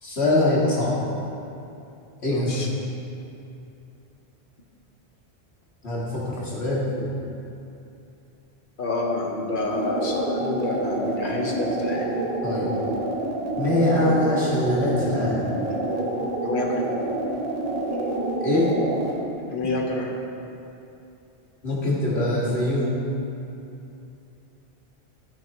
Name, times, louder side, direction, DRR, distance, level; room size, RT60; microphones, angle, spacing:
voice 1, 0.0-0.9 2.2-2.6 5.8-7.1 12.4-12.7 13.6-15.4 18.4-18.7 21.6-22.9, left 1 dB, 70° left, -6 dB, 2.1 m, -23 dB
voice 2, 2.3-2.7 8.8-12.1 15.2-15.3 16.4-16.8 19.5-20.1, left 2 dB, 50° left, 0 dB, 1.2 m, -28 dB
sound 1, 9.6-19.2, right 2 dB, 40° right, 1.0 m, -27 dB
13.5 x 5.9 x 3.0 m, 2.7 s
omnidirectional pair, 1.1 m